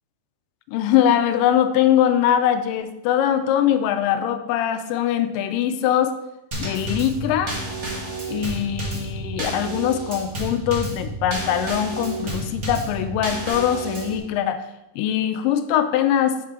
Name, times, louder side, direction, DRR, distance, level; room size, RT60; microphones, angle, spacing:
voice 1, 0.7-6.2 6.6-7.5 8.3-14.6 15.0-16.5, left 10 dB, 85° left, 9 dB, 2.2 m, -22 dB
Drum kit / Snare drum / Bass drum, 6.5-14.2, right 2 dB, 90° right, 0.6 m, -30 dB
5.8 x 5.5 x 3.7 m, 0.90 s
omnidirectional pair, 3.9 m